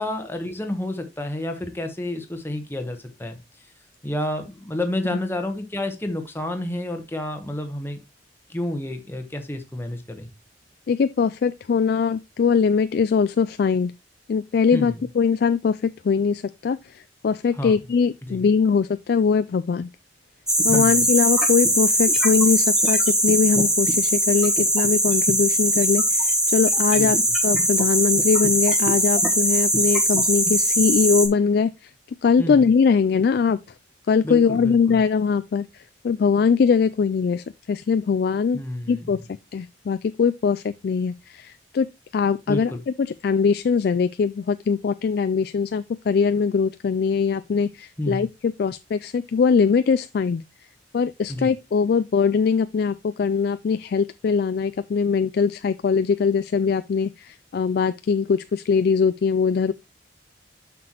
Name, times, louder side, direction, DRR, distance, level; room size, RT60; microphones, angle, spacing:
voice 1, 0.0-3.4 4.0-8.0 8.5-10.3 14.7-15.0 17.5-17.7 18.2-18.4 20.7-21.0 26.9-27.1 32.4-32.6 34.2-35.0 38.5-39.2 42.5-42.8 48.0-48.3 51.3-51.5, left 1 dB, 10° left, 1.0 m, -30 dB
voice 2, 10.9-13.9 14.3-19.9 20.6-27.2 27.4-31.9 32.2-33.6 34.1-38.6 38.9-39.2 39.5-50.4 50.9-59.7, left 5 dB, 55° left, 0.3 m, -22 dB
sound 1, 20.5-31.3, equal, 5° right, 1.3 m, -20 dB
7.5 x 6.0 x 3.0 m
head